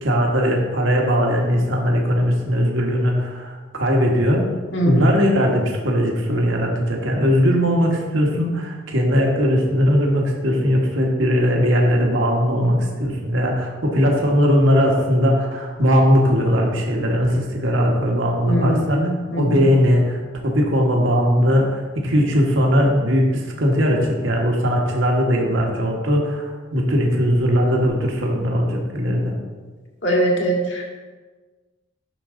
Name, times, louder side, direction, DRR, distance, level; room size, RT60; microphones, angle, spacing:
voice 1, 0.0-4.4 4.8-19.0 19.4-29.3, equal, 75° right, 0 dB, 1.5 m, -19 dB
voice 2, 4.7-5.2 18.4-19.6 30.0-30.8, right 1 dB, 65° left, -1 dB, 2.1 m, -22 dB
10.0 x 6.2 x 3.9 m, 1.4 s
head